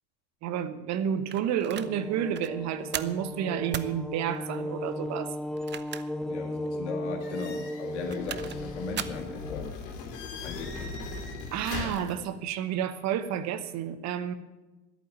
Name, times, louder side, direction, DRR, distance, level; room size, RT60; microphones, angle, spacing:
voice 1, 0.4-5.3 11.5-14.3, right 9 dB, 50° right, 12 dB, 1.1 m, -30 dB
sound 1, 1.3-1.9 2.3-2.5 2.9-3.2 3.7-3.9 5.5-6.3 6.7-6.8 7.9-8.6 9.0-9.2, right 10 dB, 30° right, 0.7 m, -37 dB
sound 2, 1.7-9.7, left 1 dB, ahead, 0.3 m, -36 dB
voice 2, 6.3-9.8 10.4-11.0, left 5 dB, 75° left, 3 dB, 2.2 m, -38 dB
sound 3, 7.2-12.1, left 4 dB, 55° left, 3.0 m, -39 dB
11.0 x 8.7 x 8.8 m, 1.1 s
figure-of-eight pair, 65°, 35 cm